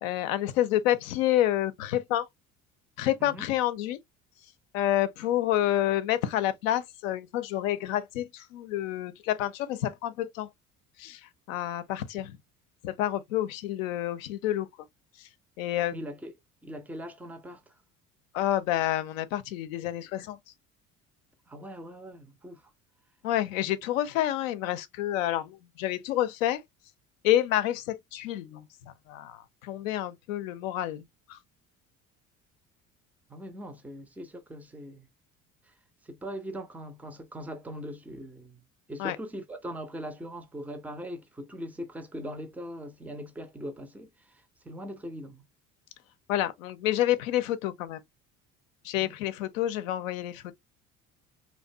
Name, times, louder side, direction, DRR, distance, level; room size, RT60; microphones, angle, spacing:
voice 1, 0.0-2.3 3.0-4.0 4.7-10.5 11.0-11.2 11.5-12.4 12.8-14.7 15.6-15.9 18.3-20.4 23.2-26.6 27.2-28.7 29.1-31.0 31.3-31.4 39.0-39.2 46.3-48.0 48.8-50.5, left 13 dB, 70° left, 0.5 m, -28 dB
voice 2, 15.9-16.3 16.6-17.6 21.5-22.6 33.3-35.1 36.1-38.6 38.9-45.4 49.0-49.2, equal, 5° right, 0.4 m, -40 dB
2.5 x 2.1 x 2.4 m
figure-of-eight pair, 60°, 42 cm